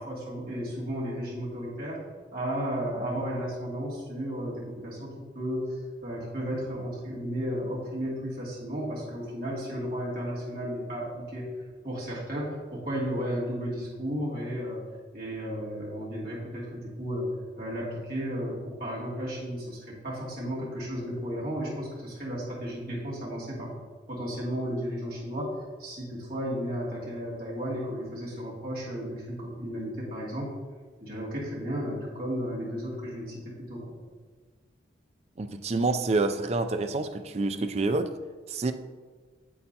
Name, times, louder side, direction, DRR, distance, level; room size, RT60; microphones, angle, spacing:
voice 1, 0.0-2.0 2.3-5.7 6.0-11.5 11.8-14.8 15.1-17.3 17.6-23.7 24.1-30.5 31.0-33.9, equal, 50° right, 2.5 m, -34 dB
voice 2, 35.4-38.1 38.5-38.7, right 3 dB, 35° right, 0.4 m, -27 dB
8.6 x 7.9 x 2.8 m
head